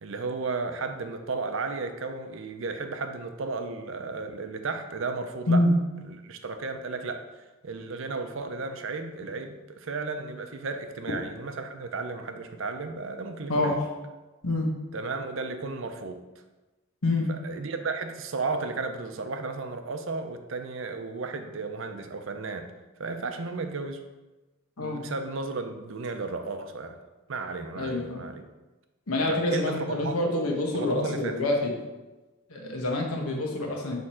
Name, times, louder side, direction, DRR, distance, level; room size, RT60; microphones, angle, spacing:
voice 1, 0.0-5.6 6.1-13.8 14.9-16.2 17.3-22.7 23.0-24.0 24.8-27.0 27.3-28.4 29.3-30.2 30.7-31.4, right 3 dB, 65° right, 7 dB, 0.6 m, -34 dB
voice 2, 27.8-28.3 29.1-31.7 32.5-34.0, left 2 dB, 85° left, 0 dB, 1.2 m, -26 dB
6.5 x 3.6 x 4.3 m, 1.1 s
head